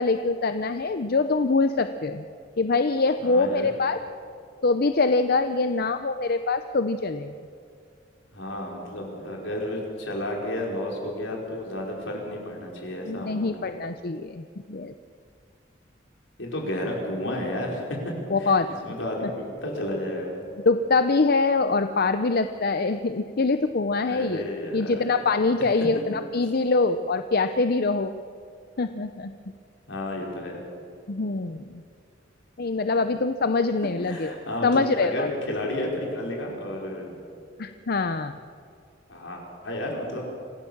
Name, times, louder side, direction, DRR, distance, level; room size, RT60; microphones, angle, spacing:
voice 1, 0.0-2.3 2.6-4.0 4.6-7.3 13.1-14.9 18.3-18.7 20.7-24.4 24.7-28.1 28.8-29.3 31.1-31.7 32.6-34.3 34.6-35.3 37.6-38.4, left 3 dB, 55° left, 9 dB, 0.7 m, -24 dB
voice 2, 3.2-3.7 8.3-13.7 16.4-18.1 18.4-18.6 18.8-20.4 24.1-25.0 25.8-25.9 29.9-30.6 34.1-37.2 39.1-40.3, left 1 dB, 75° left, -1 dB, 5.3 m, -32 dB
26.5 x 17.0 x 7.3 m, 2.4 s
head